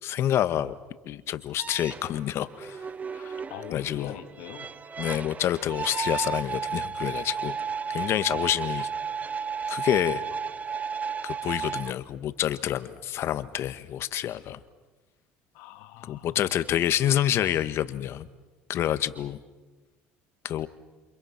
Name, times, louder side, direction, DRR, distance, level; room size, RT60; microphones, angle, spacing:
voice 1, 0.0-0.7 1.0-2.8 3.1-3.4 3.7-4.2 5.0-7.6 7.9-8.9 9.7-10.2 11.2-14.6 16.0-18.3 18.7-19.4 20.4-20.7, left 11 dB, 55° left, 12 dB, 1.4 m, -28 dB
sound 1, 1.6-11.9, right 6 dB, 30° right, 0.9 m, -33 dB
voice 2, 3.5-4.7 15.5-16.4, left 11 dB, 75° left, 6 dB, 2.5 m, -42 dB
29.5 x 27.0 x 5.9 m, 1.2 s
supercardioid pair, 80°, 5 cm